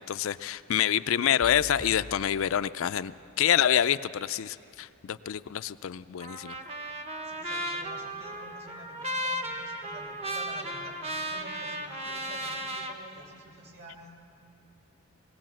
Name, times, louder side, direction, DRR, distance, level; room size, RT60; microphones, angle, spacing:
voice 1, 0.0-6.5, left 10 dB, 70° left, 13 dB, 0.4 m, -27 dB
sound 1, 1.4-3.5, left 1 dB, 5° left, 0.6 m, -47 dB
Trumpet, 6.2-13.0, right 1 dB, 30° right, 1.0 m, -35 dB
voice 2, 7.2-14.2, right 2 dB, 50° right, 0 dB, 3.0 m, -49 dB
20.5 x 17.5 x 7.6 m, 2.5 s
head